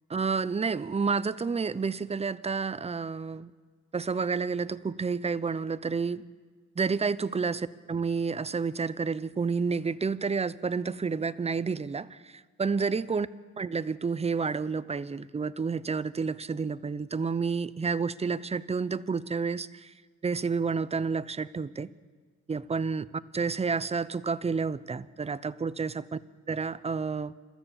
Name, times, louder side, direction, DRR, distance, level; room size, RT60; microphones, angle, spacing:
voice 1, 0.1-3.5 3.9-6.2 6.8-13.3 13.6-19.9 20.2-21.9 22.5-23.0 23.3-26.2 26.5-27.3, right 5 dB, 20° right, 16 dB, 0.7 m, -30 dB
29.5 x 13.5 x 7.3 m, 1.5 s
cardioid pair, 90°, 30 cm